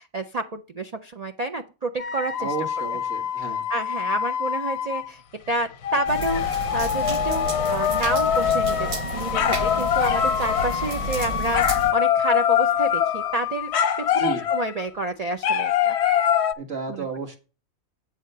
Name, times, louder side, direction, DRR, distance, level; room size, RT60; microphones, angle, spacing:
voice 1, 0.0-2.5 3.4-3.5 3.7-5.2 5.5-8.9 9.1-13.7 14.0-15.9 16.9-17.1, right 2 dB, 65° right, 6 dB, 0.3 m, -29 dB
sound 1, 2.0-5.1 5.8-14.8 15.4-16.5, left 9 dB, 65° left, 0.7 m, -24 dB
voice 2, 2.4-3.6 14.2-14.4 16.6-17.4, right 5 dB, 45° right, 2 dB, 1.7 m, -32 dB
sound 2, 4.8-4.9 5.0-13.3, left 8 dB, 90° left, 1.0 m, -37 dB
sound 3, 6.0-11.9, right 1 dB, 30° right, 0.7 m, -32 dB
8.5 x 3.6 x 6.6 m, 0.34 s
omnidirectional pair, 1.4 m